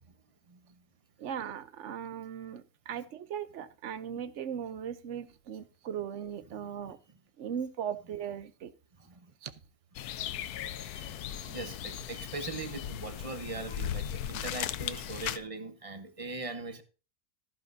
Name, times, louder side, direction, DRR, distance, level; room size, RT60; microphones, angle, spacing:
voice 1, 0.5-0.8 6.5-6.7 9.0-9.3 10.6-16.8, right 3 dB, 25° right, 1.0 m, -41 dB
voice 2, 1.2-7.0 7.4-8.7 9.4-9.5 11.4-11.5, right 8 dB, 60° right, 1.0 m, -38 dB
sound 1, 10.0-15.4, left 10 dB, 85° left, 1.2 m, -37 dB
14.0 x 10.0 x 2.7 m
omnidirectional pair, 1.6 m